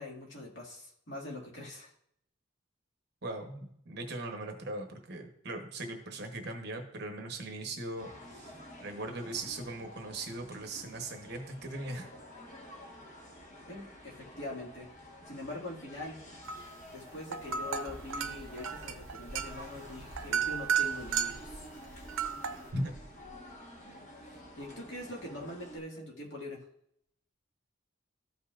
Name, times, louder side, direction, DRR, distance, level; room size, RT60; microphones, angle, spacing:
voice 1, 0.0-1.9 13.7-14.9 15.3-16.2 16.9-21.7 24.3-26.6, left 2 dB, 60° left, -3 dB, 2.1 m, -43 dB
voice 2, 3.2-12.1 22.7-22.9, right 2 dB, 50° right, 4 dB, 1.0 m, -39 dB
sound 1, 8.0-25.8, equal, 35° left, 1.4 m, -50 dB
sound 2, 16.4-16.8 17.2-21.5 22.1-22.7, right 7 dB, 75° right, 0.6 m, -33 dB
Bird, 17.4-23.5, right 1 dB, 15° left, 2.3 m, -51 dB
13.5 x 5.5 x 2.5 m, 0.72 s
head